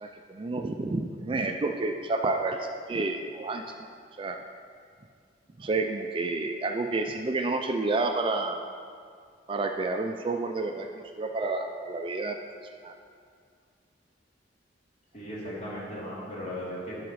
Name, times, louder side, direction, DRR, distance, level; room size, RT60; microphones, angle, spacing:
voice 1, 0.0-3.6 4.2-4.4 5.6-8.6 9.5-12.4 12.8-12.9, right 3 dB, 30° right, 5 dB, 0.4 m, -30 dB
voice 2, 15.1-17.0, equal, 40° left, -7 dB, 2.4 m, -37 dB
11.0 x 4.9 x 4.7 m, 2.2 s
head